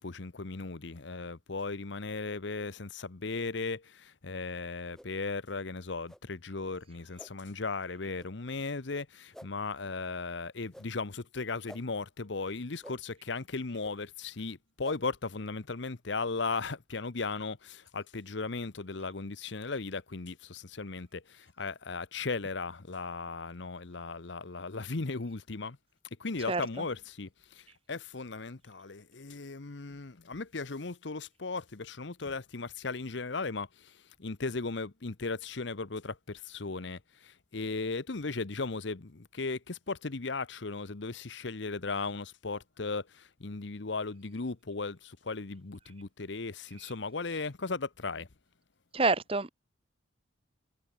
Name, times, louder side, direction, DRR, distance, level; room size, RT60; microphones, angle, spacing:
voice 1, 0.0-25.8 26.2-48.3, left 3 dB, 65° left, 1.0 m, -37 dB
sound 1, 4.9-5.1 6.1-6.2 7.2-7.3 8.2-8.3 9.3-9.5 10.7-10.9 11.7-11.8 12.8-13.0 13.8-13.9 14.8-15.0, equal, ahead, 2.1 m, -49 dB
voice 2, 48.9-49.5, right 3 dB, 30° right, 0.9 m, -27 dB
head